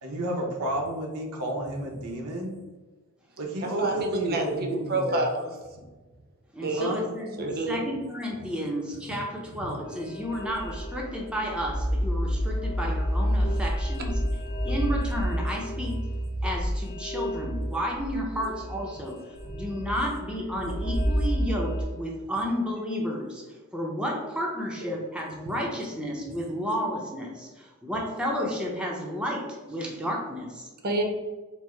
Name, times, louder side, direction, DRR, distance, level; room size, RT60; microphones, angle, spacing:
voice 1, 0.0-2.5 3.4-5.2 6.8-7.0 24.8-25.0, right 1 dB, 85° right, 0 dB, 0.9 m, -31 dB
voice 2, 3.6-5.8 6.6-7.0 7.4-7.8 19.5-19.6 30.8-31.0, right 2 dB, 45° right, 2 dB, 0.7 m, -29 dB
voice 3, 6.5-14.1 14.6-16.0 16.4-19.2 19.5-23.4 23.7-30.7, equal, 5° right, -1 dB, 0.5 m, -32 dB
sound 1, 9.8-21.8, equal, 45° left, 1.1 m, -29 dB
4.5 x 2.0 x 4.3 m, 1.2 s
head